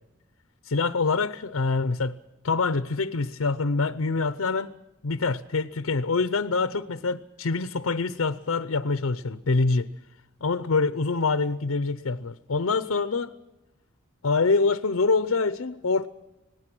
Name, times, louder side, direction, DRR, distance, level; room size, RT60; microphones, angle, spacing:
voice 1, 0.6-2.2 2.4-4.7 5.0-9.9 10.4-13.3 14.2-16.1, left 4 dB, 80° left, 0.7 m, -25 dB
26.5 x 19.0 x 6.1 m
head